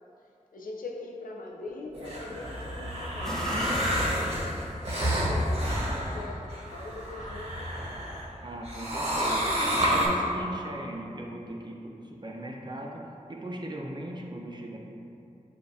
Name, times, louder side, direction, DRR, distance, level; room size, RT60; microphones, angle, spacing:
voice 1, 0.5-4.6 5.1-7.9, left 2 dB, 85° left, 0 dB, 0.5 m, -42 dB
sound 1, 1.9-8.2 8.6-10.1, equal, 50° right, 1.2 m, -29 dB
sound 2, 3.2-5.4 5.8-5.9, equal, 5° left, 0.7 m, -37 dB
voice 2, 8.4-13.0 13.3-14.8, right 1 dB, 30° right, -1 dB, 0.6 m, -38 dB
6.6 x 2.5 x 2.6 m, 2.7 s
cardioid pair, 40°, 14 cm